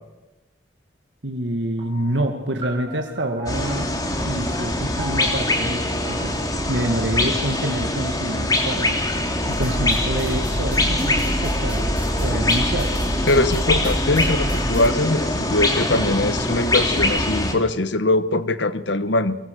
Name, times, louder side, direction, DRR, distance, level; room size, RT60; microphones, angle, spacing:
voice 1, 1.2-3.9 4.2-6.4 6.7-9.0 9.5-11.9 12.2-12.9, right 1 dB, 75° right, 3 dB, 2.1 m, -27 dB
sound 1, 1.8-10.6, right 1 dB, 25° right, 4.2 m, -41 dB
sound 2, 3.5-17.5, left 1 dB, 20° left, 2.8 m, -23 dB
sound 3, 9.5-14.9, equal, 10° right, 1.4 m, -28 dB
voice 2, 13.3-19.4, left 2 dB, 70° left, 13 dB, 1.2 m, -21 dB
24.0 x 23.5 x 6.9 m, 1.1 s
head